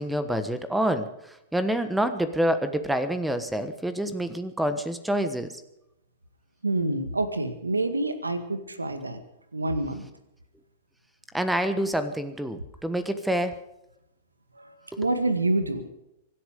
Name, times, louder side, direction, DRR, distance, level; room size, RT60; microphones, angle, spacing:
voice 1, 0.0-5.5 11.3-13.5 14.9-15.0, right 1 dB, 5° right, 11 dB, 1.2 m, -27 dB
voice 2, 6.6-9.2 9.5-10.1 14.6-15.9, right 2 dB, 90° right, 9 dB, 2.0 m, -27 dB
24.5 x 11.0 x 5.2 m, 0.87 s
figure-of-eight pair, 105°, 0 cm